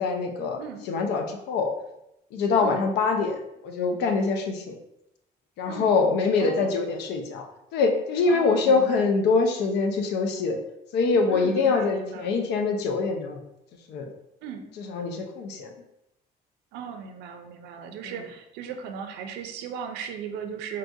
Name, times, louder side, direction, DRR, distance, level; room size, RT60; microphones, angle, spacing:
voice 1, 0.0-0.6 0.9-1.7 2.3-3.4 3.6-4.8 5.6-7.5 7.7-10.6 10.9-13.4 13.9-14.1 14.8-15.7 18.0-18.1, left 4 dB, 80° left, 4 dB, 0.5 m, -24 dB
voice 2, 5.7-6.0 6.4-6.8 8.3-9.1 11.3-12.3 14.4-14.7 16.7-20.8, right 7 dB, 90° right, 6 dB, 0.4 m, -37 dB
3.9 x 2.3 x 2.6 m, 0.85 s
cardioid pair, 110°, 17 cm